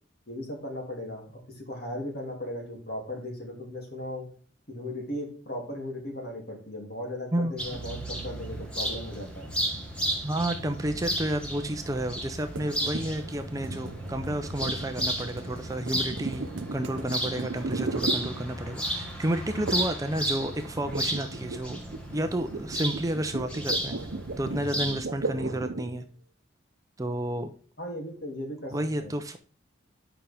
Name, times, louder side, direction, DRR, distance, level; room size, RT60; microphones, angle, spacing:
voice 1, 0.3-4.3 4.7-9.5 27.8-29.1, left 1 dB, 50° left, 1 dB, 2.7 m, -37 dB
voice 2, 7.3-7.8 10.2-21.8 22.1-24.0 24.4-26.0 27.0-27.5 28.7-29.4, right 1 dB, 15° right, 7 dB, 0.5 m, -31 dB
sound 1, 7.6-25.0, right 1 dB, 5° left, 1.5 m, -34 dB
sound 2, 12.6-18.9 19.7-20.0 20.3-26.0, right 3 dB, 75° right, 0.7 m, -36 dB
9.1 x 5.7 x 3.5 m, 0.42 s
head